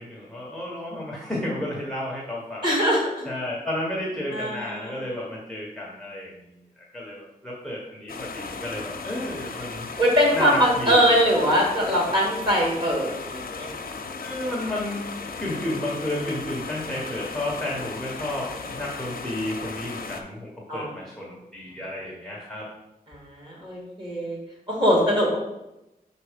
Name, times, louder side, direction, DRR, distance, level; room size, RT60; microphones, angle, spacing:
voice 1, 0.0-2.7 3.2-9.9 10.3-11.0 14.2-15.1 15.4-22.7, left 1 dB, 5° left, -5 dB, 1.1 m, -32 dB
voice 2, 2.6-3.3 4.3-4.9 10.0-13.7 20.7-20.9 23.1-24.4 24.7-25.4, equal, 30° right, -3 dB, 2.3 m, -22 dB
sound 1, 8.1-20.2, left 4 dB, 70° left, 0.7 m, -36 dB
5.7 x 4.1 x 5.0 m, 0.90 s
wide cardioid pair, 160°, 15 cm